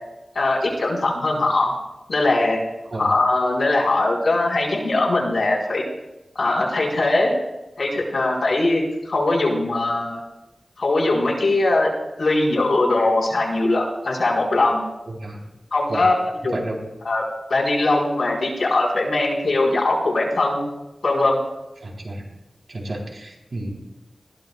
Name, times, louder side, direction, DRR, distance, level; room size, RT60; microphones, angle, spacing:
voice 1, 0.3-1.7 2.1-2.6 3.0-5.8 6.3-7.3 7.8-10.2 10.8-11.9 12.2-14.9 15.7-16.1 16.4-16.6 17.0-17.2 17.5-20.7 21.0-21.4, left 2 dB, 75° left, -3 dB, 4.3 m, -20 dB
voice 2, 15.1-15.4 15.9-16.1 16.5-16.8 21.8-22.3 22.7-23.7, right 1 dB, 60° right, -1 dB, 3.7 m, -31 dB
20.5 x 15.5 x 2.4 m, 1.0 s
wide cardioid pair, 100°, 0 cm